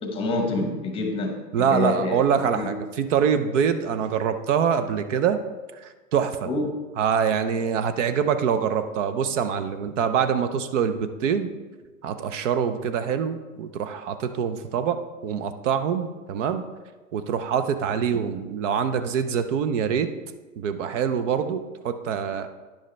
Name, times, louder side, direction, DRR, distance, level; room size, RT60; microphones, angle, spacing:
voice 1, 0.0-2.2 2.5-2.7 6.4-6.7, left 2 dB, 10° left, 3 dB, 0.9 m, -27 dB
voice 2, 1.5-5.4 5.8-6.5 7.0-11.5 12.0-16.6 17.1-20.1 20.6-22.5, right 7 dB, 55° right, 10 dB, 0.6 m, -25 dB
10.0 x 6.3 x 3.2 m, 1.3 s
hypercardioid pair, 145°, 45 cm